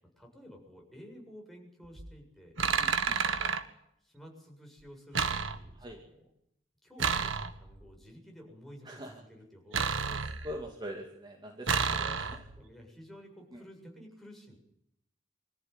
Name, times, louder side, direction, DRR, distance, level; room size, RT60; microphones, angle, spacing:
voice 1, 0.2-2.6 3.0-3.5 4.0-6.2 6.8-10.2 12.6-14.6, equal, ahead, 0 dB, 7.4 m, -52 dB
sound 1, 1.8-2.1 2.6-3.6 5.1-5.9 7.0-7.8 9.7-10.7 11.7-12.6, right 5 dB, 80° right, 1.7 m, -31 dB
voice 2, 2.8-3.2 5.7-6.0 8.8-9.1 10.0-12.5 13.5-13.6, equal, 20° right, 1 dB, 2.4 m, -43 dB
25.5 x 14.5 x 9.8 m, 0.77 s
head